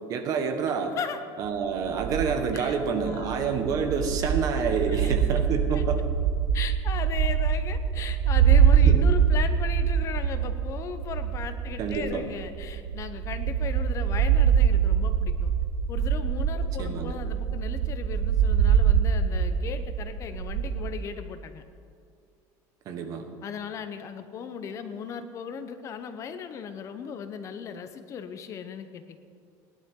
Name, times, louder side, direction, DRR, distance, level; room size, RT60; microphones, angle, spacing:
voice 1, 0.1-0.9 1.4-6.0 8.8-9.1 11.8-12.3 16.8-17.2 22.8-23.2, right 6 dB, 45° right, 5 dB, 1.4 m, -28 dB
sound 1, 1.8-20.9, right 8 dB, 75° right, 0.9 m, -24 dB
voice 2, 2.5-3.5 4.9-5.1 5.7-5.9 6.5-15.5 15.9-21.6 23.4-29.2, left 7 dB, 35° left, 9 dB, 0.8 m, -37 dB
19.0 x 11.5 x 3.8 m, 2.3 s
cardioid pair, 150°, 8 cm